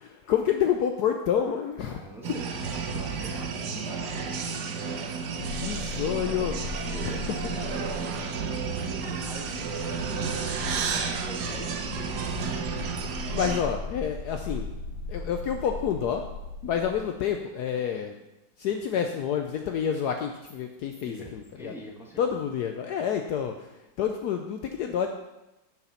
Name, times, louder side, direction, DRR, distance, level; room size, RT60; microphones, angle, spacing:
voice 1, 0.0-2.0 5.4-6.6 7.0-7.1 13.3-14.7 15.1-16.2 16.6-18.2 18.6-21.7 22.2-23.5 24.0-25.1, left 8 dB, 70° left, 5 dB, 1.0 m, -28 dB
voice 2, 1.9-4.7 6.8-8.3 8.9-11.8 12.2-12.5 21.0-22.2, equal, ahead, -1 dB, 1.1 m, -45 dB
sound 1, 2.2-13.6, right 5 dB, 65° right, 1.3 m, -32 dB
sound 2, 5.4-17.0, left 3 dB, 90° left, 2.5 m, -39 dB
7.6 x 6.0 x 5.7 m, 0.98 s
omnidirectional pair, 2.0 m